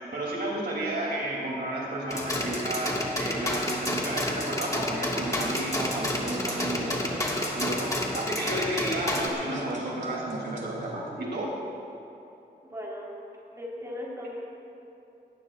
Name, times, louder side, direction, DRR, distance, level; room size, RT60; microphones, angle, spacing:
voice 1, 0.0-11.5, right 1 dB, 70° right, -4 dB, 2.9 m, -32 dB
sound 1, 2.1-9.3, left 1 dB, 20° left, 1.8 m, -30 dB
sound 2, 5.2-7.1 9.4-11.1, right 1 dB, 45° right, 2.7 m, -39 dB
voice 2, 12.6-13.1 13.5-14.4, left 1 dB, 20° right, -5 dB, 3.8 m, -37 dB
20.0 x 18.0 x 2.5 m, 2.9 s
wide cardioid pair, 120°, 18 cm